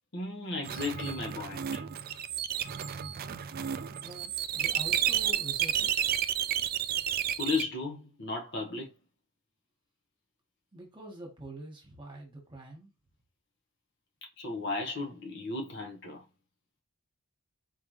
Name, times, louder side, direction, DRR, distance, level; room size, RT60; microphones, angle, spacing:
voice 1, 0.1-1.8 7.4-8.9 14.4-16.2, left 3 dB, 50° left, 1.3 m, -35 dB
sound 1, 0.6-7.6, right 10 dB, 40° right, 0.3 m, -31 dB
voice 2, 4.0-5.9 10.7-12.9, right 1 dB, 20° right, 1.6 m, -45 dB
4.6 x 3.6 x 3.2 m
head